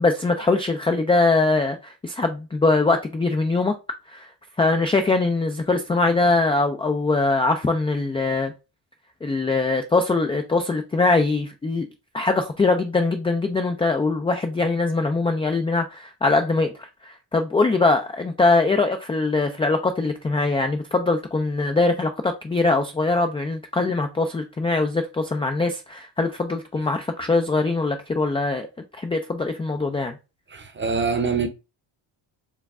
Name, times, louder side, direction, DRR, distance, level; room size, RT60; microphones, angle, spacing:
voice 1, 0.0-3.7 4.1-4.3 4.6-8.5 9.2-11.9 12.1-28.7 28.9-30.2, left 3 dB, 15° left, 0.3 m, -22 dB
voice 2, 30.5-31.5, right 5 dB, 25° right, 0.8 m, -24 dB
4.7 x 2.2 x 3.5 m
cardioid pair, 95°, 46 cm